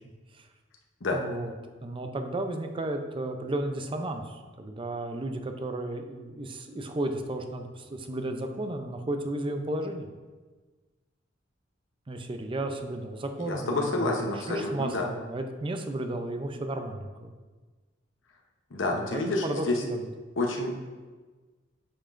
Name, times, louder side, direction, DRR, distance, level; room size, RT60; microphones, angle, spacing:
voice 1, 1.1-1.5 1.8-10.1 12.1-17.3 18.9-20.1, right 1 dB, 25° right, 6 dB, 0.5 m, -33 dB
voice 2, 13.4-15.1 18.7-19.8 20.4-20.7, left 2 dB, 75° left, 1 dB, 0.8 m, -28 dB
8.6 x 5.3 x 2.5 m, 1.3 s
head